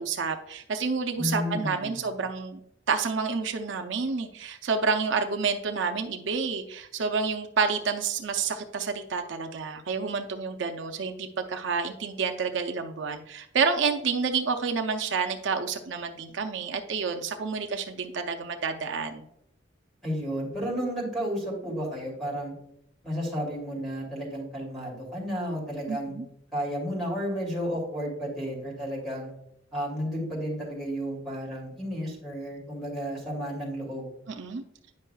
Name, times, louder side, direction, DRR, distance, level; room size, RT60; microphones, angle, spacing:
voice 1, 0.0-2.6 2.9-19.2 25.9-26.2 34.3-34.6, right 5 dB, 70° right, 5 dB, 0.5 m, -29 dB
voice 2, 1.2-2.0 20.0-22.5 23.0-26.1 26.5-29.3 29.7-34.1, equal, ahead, -3 dB, 2.4 m, -32 dB
9.5 x 5.5 x 2.3 m, 0.76 s
head